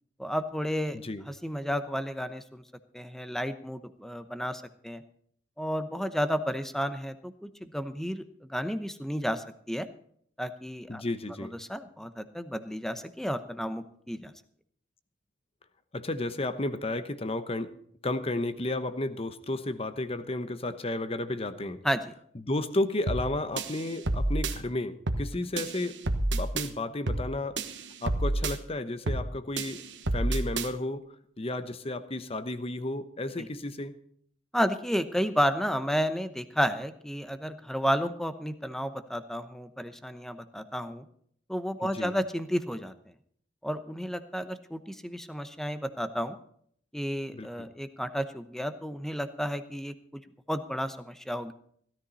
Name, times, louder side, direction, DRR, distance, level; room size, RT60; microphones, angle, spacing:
voice 1, 0.2-1.0 1.3-2.6 2.9-5.0 5.6-9.9 10.4-11.0 11.4-14.3 21.8-22.1 33.4-33.5 34.5-41.1 41.5-42.9 43.6-46.4 46.9-50.2 50.5-51.5, equal, ahead, 10 dB, 0.8 m, -32 dB
voice 2, 10.9-11.5 15.9-17.7 18.0-21.8 22.4-26.0 26.3-27.6 28.0-29.8 30.1-31.0 31.4-33.9 41.8-42.1 47.3-47.7, left 2 dB, 30° left, 11 dB, 1.0 m, -32 dB
sound 1, 23.1-23.3 23.6-24.6 25.1-25.3 25.6-26.7 27.1-27.3 27.6-28.6 29.1-29.3 29.6-30.7, right 2 dB, 70° right, 1.3 m, -29 dB
16.5 x 13.0 x 4.1 m, 0.63 s
head